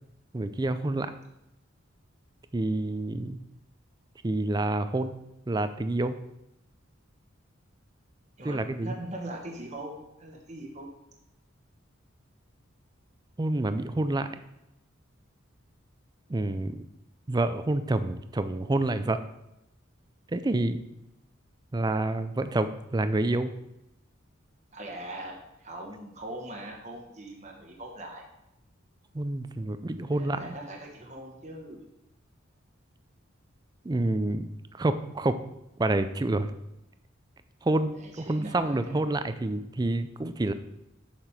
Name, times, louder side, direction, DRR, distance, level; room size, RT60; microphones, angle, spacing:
voice 1, 0.3-1.1 2.5-3.4 4.2-5.2 5.5-6.2 8.4-8.9 13.4-14.3 16.3-16.8 17.3-19.2 20.3-20.8 21.7-23.5 29.1-30.6 33.8-35.4 35.8-36.5 37.6-40.5, right 2 dB, 20° right, 11 dB, 0.4 m, -28 dB
voice 2, 8.4-10.9 24.7-28.2 30.1-31.8 38.0-39.0, right 1 dB, 35° right, 0 dB, 1.1 m, -41 dB
7.2 x 5.9 x 4.9 m, 0.88 s
head